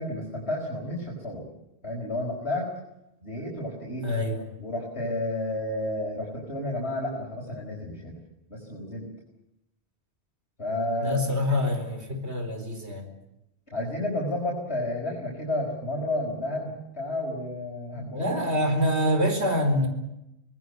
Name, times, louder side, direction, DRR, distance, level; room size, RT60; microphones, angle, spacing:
voice 1, 0.0-1.5 1.8-2.7 3.2-4.1 4.6-8.1 8.5-9.1 10.6-11.2 11.5-11.6 13.7-18.4, left 1 dB, 75° left, -3 dB, 5.3 m, -31 dB
voice 2, 4.0-4.5 11.0-13.1 17.9-19.9, left 1 dB, 80° right, 6 dB, 4.6 m, -26 dB
25.0 x 19.5 x 8.2 m, 0.87 s
omnidirectional pair, 1.1 m